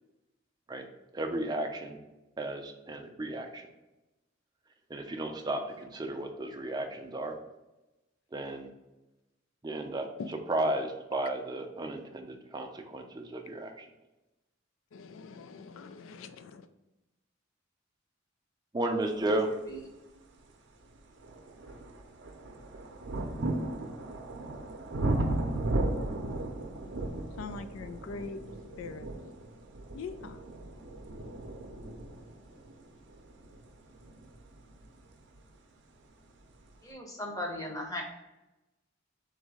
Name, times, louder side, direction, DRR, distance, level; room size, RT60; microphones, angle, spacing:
voice 1, 1.1-2.0 2.4-3.6 4.9-7.3 8.3-8.7 9.6-10.1 10.5-13.9 18.7-19.5, right 1 dB, 20° right, 4 dB, 0.5 m, -33 dB
voice 2, 14.9-16.6 27.4-28.4 28.8-29.1 29.9-30.5, left 4 dB, 85° left, 11 dB, 0.4 m, -42 dB
sound 1, 20.2-20.3 20.8-35.5 36.4-36.5, right 2 dB, 60° right, 0.6 m, -36 dB
voice 3, 36.8-38.0, left 1 dB, 15° left, 0 dB, 0.8 m, -37 dB
3.9 x 2.7 x 4.7 m, 1.0 s
head